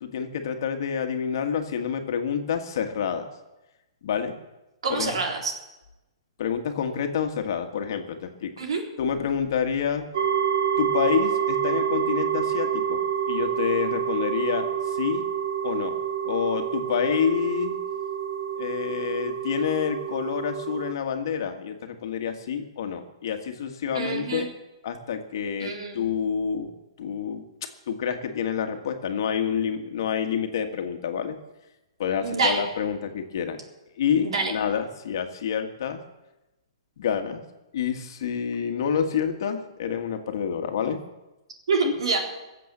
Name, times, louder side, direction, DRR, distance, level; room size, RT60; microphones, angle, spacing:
voice 1, 0.0-3.3 4.0-4.4 4.9-5.1 6.4-8.5 9.0-10.1 10.8-15.3 15.6-16.0 16.2-17.8 18.6-24.5 24.8-26.7 27.0-31.4 32.0-33.6 34.0-36.0 37.0-37.4 37.7-41.0 41.8-41.9, left 7 dB, 50° left, 5 dB, 1.6 m, -28 dB
voice 2, 4.8-5.5 8.6-8.8 23.9-24.5 25.6-26.1 32.2-32.7 34.2-34.5 41.7-42.2, right 4 dB, 75° right, 2 dB, 3.9 m, -26 dB
sound 1, 10.1-20.9, right 8 dB, 50° right, 1.1 m, -28 dB
21.5 x 7.6 x 7.3 m, 1.0 s
hypercardioid pair, 165°, 3 cm